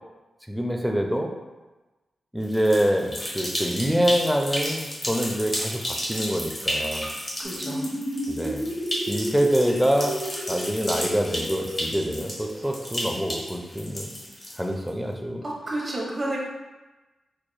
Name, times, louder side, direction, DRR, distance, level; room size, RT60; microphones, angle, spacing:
voice 1, 0.5-1.3 2.3-5.8 6.1-7.1 8.3-8.7 9.1-10.1 10.5-14.1 14.6-15.4, equal, ahead, 2 dB, 0.5 m, -25 dB
sound 1, 2.4-14.9, equal, 30° left, 1.1 m, -32 dB
sound 2, 7.4-12.8, equal, 85° left, 0.9 m, -33 dB
voice 2, 7.4-7.8 15.4-16.4, right 1 dB, 35° right, -5 dB, 1.1 m, -30 dB
4.6 x 2.9 x 2.2 m, 1.1 s
cardioid pair, 70°, 0 cm